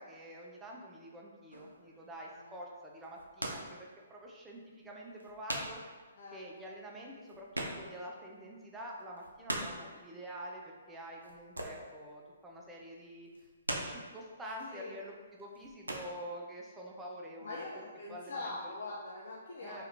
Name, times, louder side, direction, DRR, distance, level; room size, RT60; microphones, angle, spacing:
voice 1, 0.0-3.8 4.1-5.8 6.3-13.3 13.7-17.5 18.1-18.7 19.6-19.9, equal, 10° right, -2 dB, 0.4 m, -47 dB
sound 1, 1.5-1.9 3.0-3.8 4.1-4.2 4.8-4.9 5.1-5.9 6.2-6.3 6.5-6.6 6.9-8.2 8.5-8.6 9.0-9.9 11.2-12.0 12.3-12.7 13.3-14.2 14.8-15.1 15.4-16.1, right 1 dB, 80° right, 0.4 m, -40 dB
voice 2, 17.4-19.9, left 2 dB, 50° left, -5 dB, 0.4 m, -43 dB
2.8 x 2.4 x 3.2 m, 1.4 s
figure-of-eight pair, 125°, 0 cm